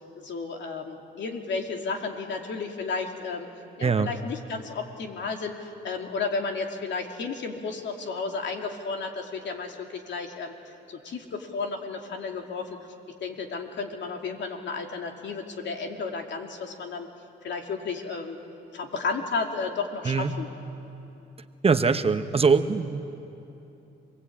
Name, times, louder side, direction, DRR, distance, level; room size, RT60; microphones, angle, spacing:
voice 1, 0.2-3.5 3.8-10.5 10.9-12.8 13.2-17.1 17.4-18.4 18.7-20.5, left 4 dB, 65° left, 3 dB, 2.7 m, -33 dB
voice 2, 21.6-23.0, right 5 dB, 30° right, 10 dB, 0.9 m, -22 dB
27.0 x 20.0 x 8.6 m, 3.0 s
cardioid pair, 90°, 20 cm